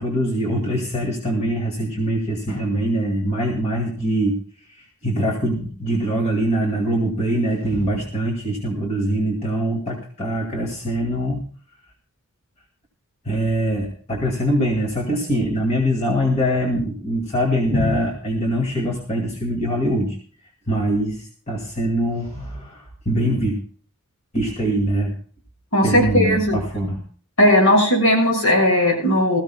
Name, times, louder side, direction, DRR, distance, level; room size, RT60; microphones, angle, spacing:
voice 1, 0.0-4.4 4.7-11.4 13.3-20.2 20.7-23.6 24.3-25.1 25.8-27.0, equal, 30° left, 0 dB, 2.1 m, -23 dB
voice 2, 25.7-26.6 27.4-29.4, left 1 dB, 65° left, 0 dB, 6.5 m, -17 dB
21.0 x 14.5 x 2.3 m, 0.42 s
head